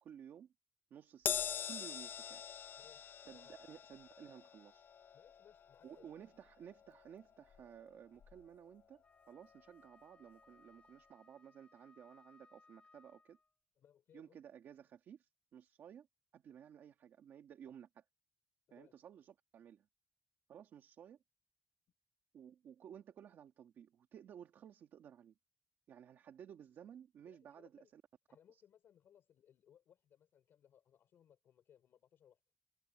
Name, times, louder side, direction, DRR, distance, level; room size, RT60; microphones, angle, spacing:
voice 1, 0.0-0.5 0.9-2.4 3.2-4.8 5.8-13.4 14.1-16.1 16.3-18.0 18.7-19.9 20.5-21.2 22.3-25.3 25.9-28.0 28.5-28.6, right 9 dB, 85° right, 1.7 m, -56 dB
Crash cymbal, 1.3-7.9 8.2-8.4 9.5-9.6, left 8 dB, 70° left, 0.7 m, -44 dB
voice 2, 2.8-3.6 5.1-6.1 13.8-14.4 18.7-19.0 27.2-27.9 28.3-32.4, left 9 dB, 85° left, 5.4 m, -67 dB
Wind instrument woodwind instrument, 8.9-13.6, left 3 dB, 30° left, 4.3 m, -67 dB
cardioid pair, 90°, 4 cm